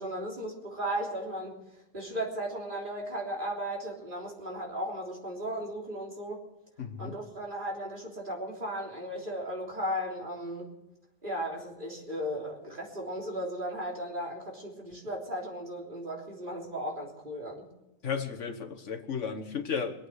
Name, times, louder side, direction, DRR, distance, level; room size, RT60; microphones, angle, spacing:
voice 1, 0.0-1.6 1.9-6.4 7.0-10.7 11.2-17.7, equal, 40° right, -2 dB, 3.8 m, -36 dB
voice 2, 6.8-7.2 18.0-20.1, left 6 dB, 75° left, 5 dB, 1.7 m, -34 dB
24.0 x 8.6 x 6.5 m, 1.0 s
omnidirectional pair, 1.3 m